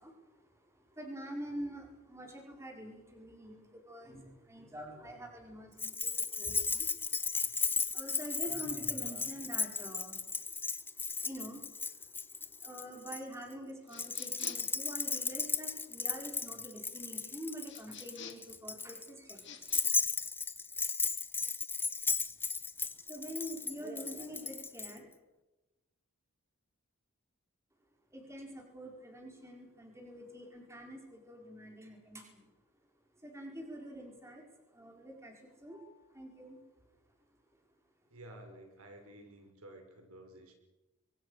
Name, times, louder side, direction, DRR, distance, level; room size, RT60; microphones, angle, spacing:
voice 1, 0.0-10.6 11.0-19.5 23.0-25.1 28.1-32.5 33.1-36.6, equal, 15° right, 1 dB, 5.1 m, -46 dB
Keys jangling, 5.8-13.2 13.9-24.9, left 4 dB, 10° left, 0.8 m, -35 dB
sound 1, 13.9-14.8 17.7-18.6 19.4-19.8, left 7 dB, 55° left, 2.4 m, -50 dB
voice 2, 38.1-40.5, right 1 dB, 80° right, 4 dB, 5.3 m, -52 dB
24.0 x 23.5 x 6.6 m, 1.0 s
head